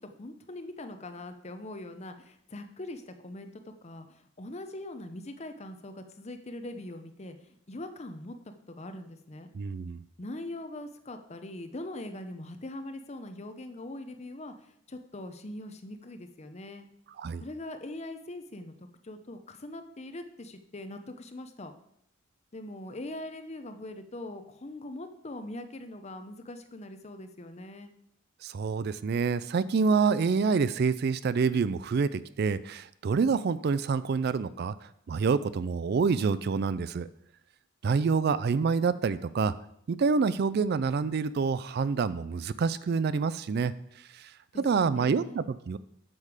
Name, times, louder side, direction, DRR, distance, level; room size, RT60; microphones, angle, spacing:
voice 1, 0.0-9.5 10.2-14.5 14.9-16.9 17.4-21.7 22.5-27.9 44.5-45.4, left 1 dB, 30° left, 8 dB, 0.7 m, -42 dB
voice 2, 9.5-10.0 17.2-17.4 28.4-37.1 37.8-39.5 39.9-43.7 44.1-44.3 44.6-45.8, right 5 dB, 50° right, 16 dB, 0.3 m, -27 dB
8.6 x 6.5 x 4.9 m, 0.71 s
head